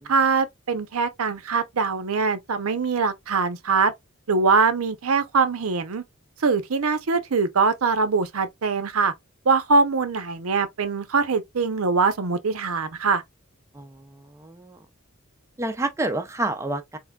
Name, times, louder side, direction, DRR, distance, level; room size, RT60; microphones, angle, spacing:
voice 1, 0.1-3.9 4.3-6.0 6.4-9.1 9.5-13.2, right 4 dB, 85° right, 0.7 m, -22 dB
voice 2, 13.7-14.8 15.6-17.0, right 2 dB, 15° right, 0.4 m, -29 dB
3.6 x 3.2 x 2.3 m
head